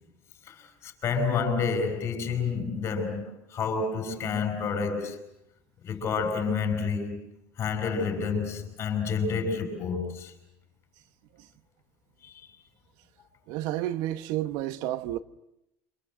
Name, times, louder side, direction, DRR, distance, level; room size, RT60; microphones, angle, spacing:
voice 1, 0.5-5.2 5.8-7.2 7.6-10.3 12.2-12.3, left 5 dB, 40° left, 7.2 m, -29 dB
voice 2, 13.5-15.2, right 14 dB, 70° right, 1.1 m, -30 dB
28.0 x 26.5 x 8.0 m
supercardioid pair, 120°, 7 cm